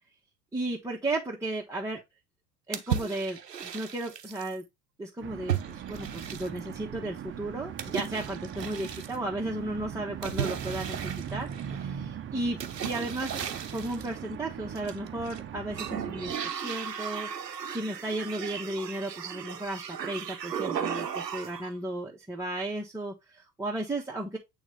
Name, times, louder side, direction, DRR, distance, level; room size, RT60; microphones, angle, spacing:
voice 1, 0.5-2.0 2.7-4.6 5.0-13.4 13.7-24.4, right 1 dB, 5° right, 1.2 m, -34 dB
sound 1, 2.7-4.5 5.5-6.8 7.8-9.2 10.2-11.9 12.6-14.1 14.8-15.4 15.7-21.7, right 8 dB, 85° right, 0.8 m, -35 dB
sound 2, 5.2-16.4, right 8 dB, 25° right, 0.8 m, -40 dB
8.7 x 3.3 x 3.3 m
figure-of-eight pair, 70°, 47 cm